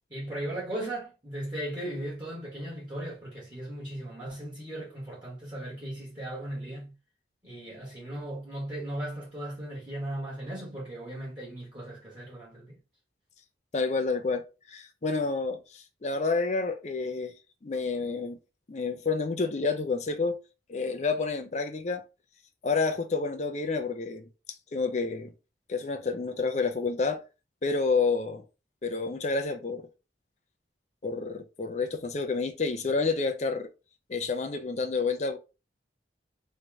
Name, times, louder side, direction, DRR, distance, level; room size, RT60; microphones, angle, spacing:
voice 1, 0.1-6.9 7.4-12.8, right 1 dB, 25° right, 1.4 m, -37 dB
voice 2, 13.7-17.3 17.6-18.4 18.7-20.4 20.7-22.0 22.6-24.3 24.7-25.3 25.7-27.2 27.6-28.4 28.8-29.9 31.0-33.7 34.1-35.4, left 4 dB, 40° left, 0.5 m, -29 dB
3.1 x 2.8 x 3.4 m
head